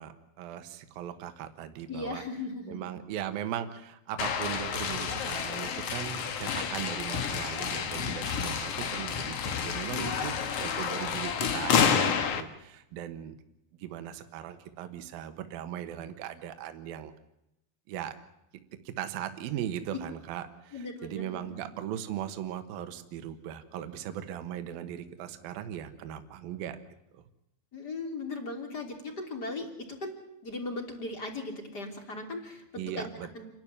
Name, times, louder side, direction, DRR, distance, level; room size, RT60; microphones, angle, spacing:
voice 1, 0.0-2.2 2.7-13.3 13.8-17.1 17.9-18.1 18.9-26.8 32.8-33.5, right 10 dB, 70° right, 9 dB, 3.0 m, -38 dB
voice 2, 1.9-2.8 9.9-10.9 20.7-21.5 27.7-30.1 30.4-33.1 33.3-33.5, left 2 dB, 25° left, 3 dB, 3.4 m, -38 dB
sound 1, 4.2-12.4, left 7 dB, 55° left, 1.9 m, -30 dB
28.5 x 12.0 x 10.0 m, 0.86 s
omnidirectional pair, 4.6 m